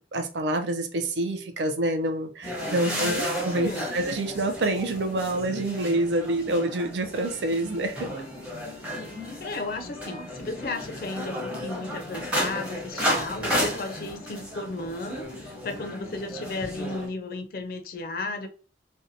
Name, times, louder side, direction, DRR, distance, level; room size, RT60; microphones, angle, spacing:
voice 1, 0.1-8.1, right 1 dB, 80° right, 0.5 m, -27 dB
sound 1, 2.4-17.1, equal, 10° right, 0.7 m, -33 dB
voice 2, 2.8-4.0 9.4-18.5, left 2 dB, 50° left, 0.4 m, -34 dB
2.7 x 2.2 x 2.6 m
head